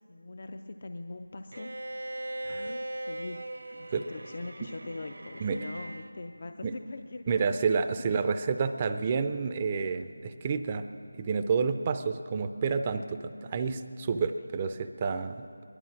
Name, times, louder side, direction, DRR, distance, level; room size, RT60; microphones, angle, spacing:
voice 1, 0.1-1.7 2.5-3.4 3.7-7.7 8.1-8.2 12.6-12.8, left 2 dB, 50° left, 7 dB, 0.5 m, -42 dB
Bowed string instrument, 1.5-6.2, right 1 dB, 75° right, 1.0 m, -39 dB
voice 2, 7.3-10.9 11.2-15.5, right 5 dB, 25° right, 9 dB, 0.5 m, -29 dB
18.5 x 11.5 x 6.2 m, 2.5 s
figure-of-eight pair, 165°, 0 cm